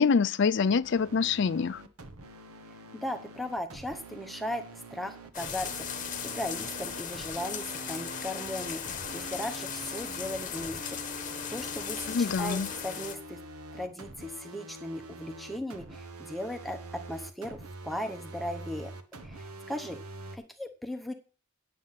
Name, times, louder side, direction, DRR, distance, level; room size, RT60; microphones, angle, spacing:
voice 1, 0.0-1.8 12.1-12.7, left 5 dB, 55° left, 0.4 m, -25 dB
sound 1, 0.8-20.4, right 2 dB, 90° right, 1.2 m, -45 dB
voice 2, 2.9-13.4 13.7-16.8 17.1-18.9 19.2-20.0 20.3-21.1, left 1 dB, ahead, 0.8 m, -37 dB
sound 2, 5.3-13.2, left 7 dB, 35° left, 1.0 m, -37 dB
9.3 x 7.5 x 5.7 m
head